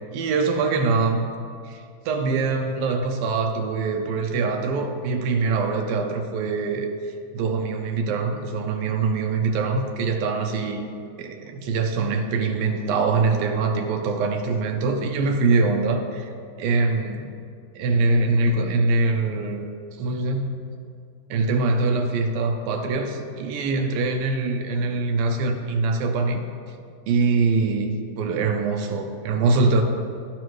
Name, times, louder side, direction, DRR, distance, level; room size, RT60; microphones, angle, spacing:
voice 1, 0.1-1.3 1.7-6.9 7.3-10.9 11.2-16.3 16.6-17.3 17.8-19.6 20.0-20.5 21.3-26.4 27.1-29.8, right 3 dB, 80° right, 5 dB, 2.2 m, -23 dB
12.0 x 9.2 x 3.1 m, 2.3 s
omnidirectional pair, 4.3 m